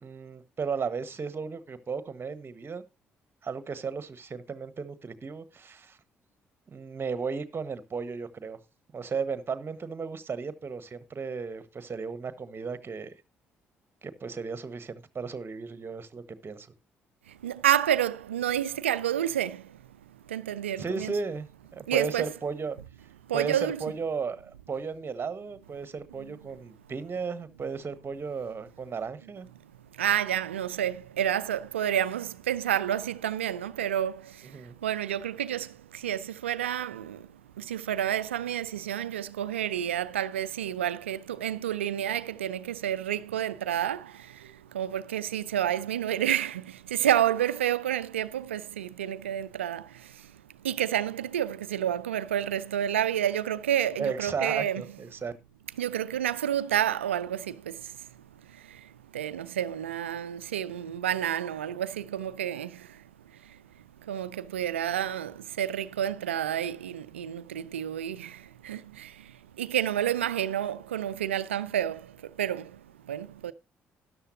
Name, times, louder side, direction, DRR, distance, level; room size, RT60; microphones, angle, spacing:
voice 1, 0.0-2.8 3.4-6.0 6.7-8.6 8.9-13.1 14.0-16.7 20.8-22.8 23.3-29.5 34.4-34.8 54.0-55.3, right 5 dB, 35° right, 1.4 m, -35 dB
voice 2, 17.3-19.8 20.3-21.1 21.9-22.3 23.3-23.8 29.9-54.8 55.8-58.1 58.5-63.0 63.4-63.6 64.0-73.5, right 10 dB, 85° right, 0.5 m, -30 dB
13.0 x 11.0 x 2.7 m
figure-of-eight pair, 45°, 6 cm